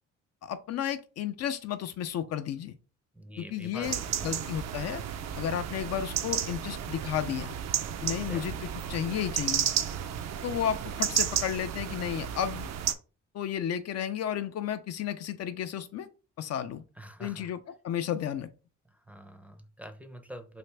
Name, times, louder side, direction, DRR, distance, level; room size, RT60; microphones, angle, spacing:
voice 1, 0.4-2.7 3.4-5.0 5.4-7.5 8.0-9.7 10.4-12.7 13.3-16.1 16.4-16.8 17.2-17.6 17.8-18.5, left 9 dB, 60° left, 0.4 m, -33 dB
voice 2, 3.1-4.4 8.0-8.7 17.0-17.6 18.9-20.6, right 1 dB, 5° right, 0.5 m, -46 dB
sound 1, 3.8-12.9, right 9 dB, 60° right, 0.5 m, -32 dB
3.3 x 2.5 x 3.2 m
cardioid pair, 90°, 30 cm